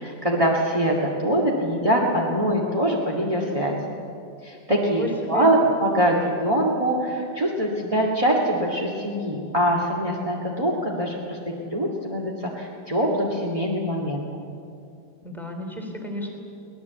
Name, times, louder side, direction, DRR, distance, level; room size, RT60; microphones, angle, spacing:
voice 1, 0.0-4.0 4.4-14.5, right 1 dB, 15° right, -2 dB, 1.1 m, -23 dB
voice 2, 4.7-5.5 15.2-16.4, equal, ahead, 2 dB, 2.9 m, -32 dB
23.5 x 19.0 x 8.2 m, 2.6 s
omnidirectional pair, 3.8 m